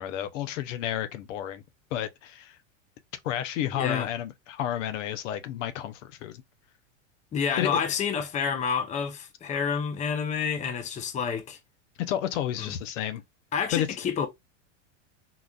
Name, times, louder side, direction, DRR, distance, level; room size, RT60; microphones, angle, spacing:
voice 1, 0.0-1.6 1.9-2.6 3.2-6.4 7.6-7.8 12.0-13.2 13.7-13.9, left 11 dB, 75° left, 0.7 m, -31 dB
voice 2, 3.7-4.1 7.3-11.6 12.6-12.7 13.5-14.3, left 6 dB, 20° left, 0.6 m, -29 dB
3.9 x 2.4 x 2.3 m
supercardioid pair, 130°, 38 cm